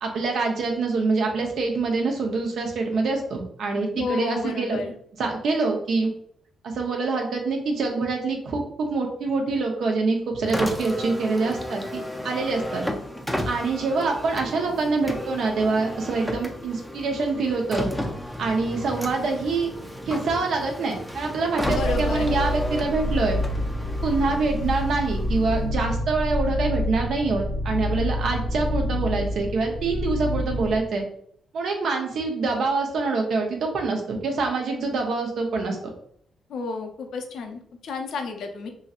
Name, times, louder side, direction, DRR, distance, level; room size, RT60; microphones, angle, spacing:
voice 1, 0.0-4.8 5.2-6.1 6.6-11.8 12.2-12.8 13.5-17.9 18.4-19.7 20.1-23.4 24.0-31.1 31.5-35.9, right 3 dB, 75° right, 1 dB, 0.7 m, -25 dB
voice 2, 3.9-4.9 21.7-22.3 36.5-38.7, left 4 dB, 80° left, 4 dB, 0.5 m, -31 dB
Car, 10.4-25.8, equal, ahead, 0.4 m, -34 dB
sound 1, 21.6-30.8, left 1 dB, 40° right, 0.7 m, -28 dB
3.0 x 2.7 x 2.4 m, 0.66 s
cardioid pair, 100°, 0 cm